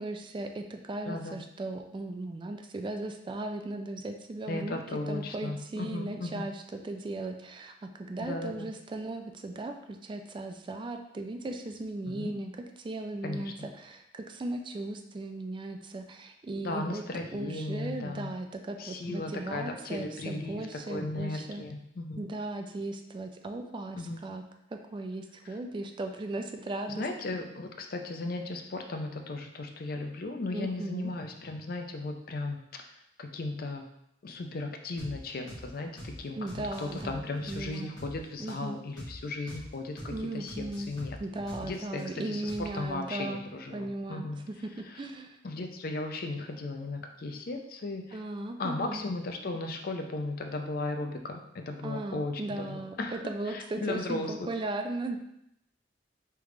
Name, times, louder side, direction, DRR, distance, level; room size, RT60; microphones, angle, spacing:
voice 1, 0.0-12.5 12.8-17.0 17.3-21.7 22.2-24.4 24.7-27.0 30.5-31.1 36.3-38.0 38.4-38.8 40.1-40.9 41.2-43.5 43.7-45.4 48.1-49.0 51.8-55.2, right 2 dB, 30° right, 5 dB, 0.3 m, -37 dB
voice 2, 1.1-1.4 4.5-6.5 8.2-8.7 12.1-12.3 13.2-13.5 16.6-18.3 18.8-22.3 24.0-24.2 26.9-32.8 33.2-33.8 34.2-36.4 36.8-40.6 40.9-41.2 41.6-44.4 45.4-48.2 48.6-53.2 53.5-54.5, left 2 dB, 55° left, 4 dB, 0.5 m, -36 dB
sound 1, 35.0-35.2 35.5-35.7 36.0-36.2 36.5-38.2 38.5-38.6 39.0-39.2 39.5-39.7 40.0-40.2 40.5-42.0 42.5-42.9, equal, 25° left, 1.5 m, -44 dB
3.6 x 3.4 x 3.2 m, 0.77 s
head